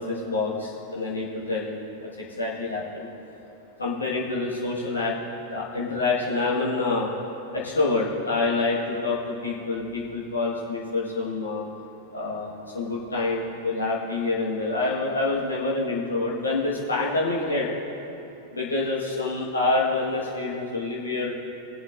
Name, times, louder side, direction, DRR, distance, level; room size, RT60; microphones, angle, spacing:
voice 1, 0.0-1.7 2.0-2.1 2.4-3.1 3.8-5.1 5.5-7.1 7.5-11.6 12.1-17.7 18.5-21.3, left 3 dB, 75° left, -5 dB, 1.6 m, -27 dB
19.5 x 7.9 x 2.6 m, 2.9 s
figure-of-eight pair, 90°, 0 cm